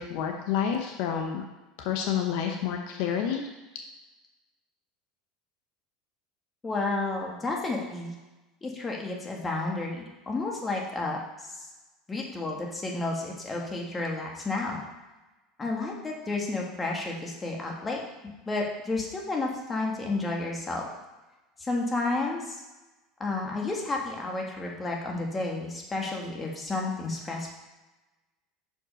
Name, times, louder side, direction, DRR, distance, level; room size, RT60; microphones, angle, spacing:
voice 1, 0.0-1.4 1.8-3.4, left 8 dB, 70° left, 3 dB, 0.8 m, -29 dB
voice 2, 6.6-8.2 8.6-11.2 11.5-11.6 12.1-14.8 15.6-18.0 18.5-20.8 21.6-22.6 23.2-27.5, left 2 dB, 20° left, -1 dB, 1.7 m, -31 dB
6.0 x 5.3 x 5.1 m, 1.1 s
supercardioid pair, 105°, 0 cm